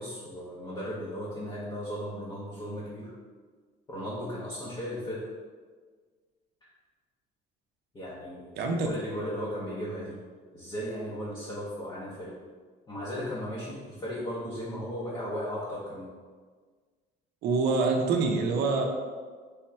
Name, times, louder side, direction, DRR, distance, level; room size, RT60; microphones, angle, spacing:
voice 1, 0.0-3.1 3.9-5.3 7.9-10.2 10.5-12.4 12.9-16.1, equal, 25° left, -8 dB, 0.7 m, -36 dB
voice 2, 8.6-8.9 17.4-18.9, right 4 dB, 60° right, 2 dB, 0.6 m, -25 dB
3.5 x 3.0 x 4.4 m, 1.5 s
cardioid pair, 155°, 19 cm